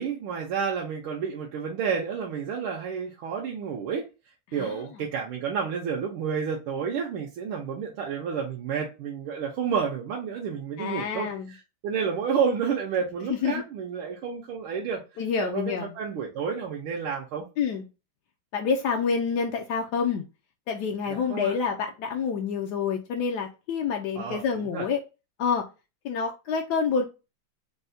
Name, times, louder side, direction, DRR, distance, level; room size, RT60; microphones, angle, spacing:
voice 1, 0.0-4.0 4.5-15.0 15.3-17.4 21.1-21.5 24.2-24.4 24.7-24.9, right 6 dB, 85° right, 1.5 m, -30 dB
voice 2, 10.8-11.5 13.3-13.6 15.2-15.9 17.6-17.9 18.5-20.2 20.7-25.0 25.4-25.7 26.0-27.0, left 6 dB, 80° left, 0.9 m, -27 dB
4.6 x 2.1 x 2.6 m
omnidirectional pair, 2.3 m